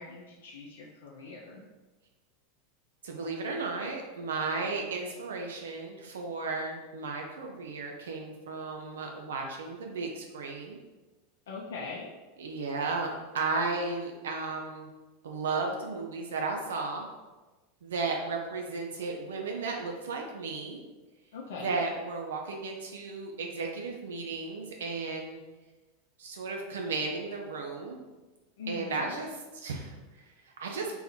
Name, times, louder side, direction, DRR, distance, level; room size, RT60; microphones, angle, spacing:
voice 1, 0.0-1.7 11.5-12.1 21.3-21.7 28.6-29.1, left 4 dB, 75° left, -3 dB, 0.6 m, -41 dB
voice 2, 3.0-10.8 12.4-14.9 15.2-17.1 17.8-20.8 21.6-25.4 26.2-28.0 28.7-29.3 29.5-30.9, right 3 dB, 80° right, 1 dB, 0.6 m, -34 dB
3.9 x 2.7 x 4.3 m, 1.2 s
hypercardioid pair, 95°, 0 cm